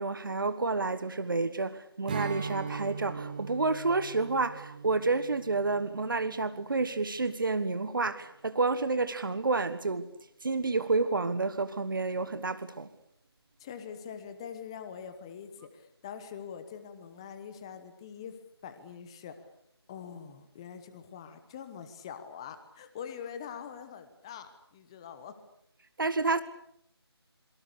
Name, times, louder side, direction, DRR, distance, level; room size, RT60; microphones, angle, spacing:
voice 1, 0.0-10.1 10.4-12.9 26.0-26.4, right 3 dB, 50° right, 1.3 m, -29 dB
Strum, 2.1-7.5, right 5 dB, 20° right, 1.5 m, -40 dB
voice 2, 13.6-18.4 18.6-19.4 19.9-25.4, left 7 dB, 10° left, 1.0 m, -44 dB
27.5 x 23.5 x 6.8 m
figure-of-eight pair, 165°, 14 cm